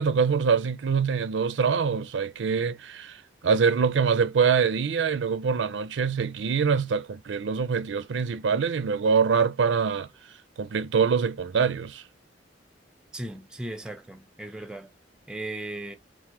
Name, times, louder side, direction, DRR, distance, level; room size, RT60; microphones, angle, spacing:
voice 1, 0.0-10.1 10.6-12.0, right 6 dB, 75° right, 0.4 m, -24 dB
voice 2, 13.1-14.9 15.3-16.0, right 1 dB, 5° right, 0.4 m, -37 dB
3.2 x 2.1 x 2.8 m
head